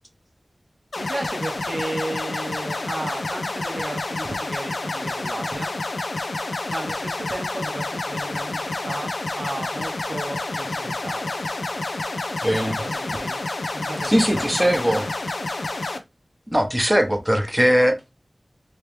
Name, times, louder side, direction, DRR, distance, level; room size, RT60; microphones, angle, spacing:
sound 1, 0.9-16.0, left 2 dB, 85° left, 0.5 m, -29 dB
voice 1, 1.0-5.7 6.7-11.4 12.6-13.4 13.7-15.1, right 2 dB, 70° right, 0.6 m, -34 dB
voice 2, 12.4-12.8 14.0-15.0 16.5-18.0, equal, 5° right, 0.9 m, -20 dB
3.0 x 2.9 x 3.4 m
wide cardioid pair, 65°, 0 cm